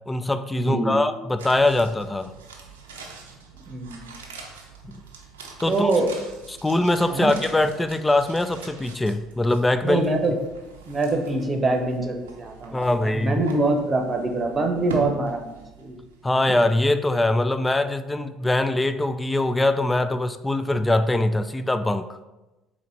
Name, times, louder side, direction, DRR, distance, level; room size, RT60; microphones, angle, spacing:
voice 1, 0.0-2.3 4.8-4.9 5.6-5.9 6.5-10.0 12.7-13.4 16.2-22.2, left 2 dB, 15° left, 10 dB, 0.3 m, -22 dB
voice 2, 0.6-1.0 3.7-4.1 5.7-6.1 7.1-7.3 9.8-10.3 10.9-16.0, right 2 dB, 30° right, 3 dB, 0.9 m, -24 dB
sound 1, 1.4-16.6 16.8-16.9, right 4 dB, 85° right, 0.6 m, -42 dB
4.1 x 3.0 x 4.3 m, 1.0 s
hypercardioid pair, 60°, 0 cm